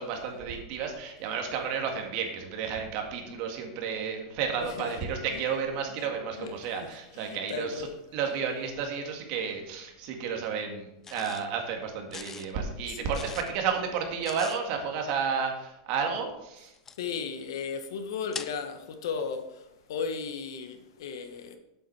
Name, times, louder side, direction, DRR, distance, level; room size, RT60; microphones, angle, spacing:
voice 1, 0.0-7.9 8.1-16.7, right 6 dB, 45° right, 1.9 m, -32 dB
voice 2, 4.6-5.0 5.3-5.4 6.3-6.5 6.8-6.9 7.1-7.9 12.9-13.1 17.0-21.6, left 5 dB, 80° left, 1.4 m, -35 dB
sound 1, 11.0-11.5 12.1-12.5 13.1-13.5 14.2-14.6 16.7-17.0 18.3-18.5, left 6 dB, 15° left, 0.4 m, -41 dB
8.2 x 7.8 x 4.7 m
supercardioid pair, 160°, 2 cm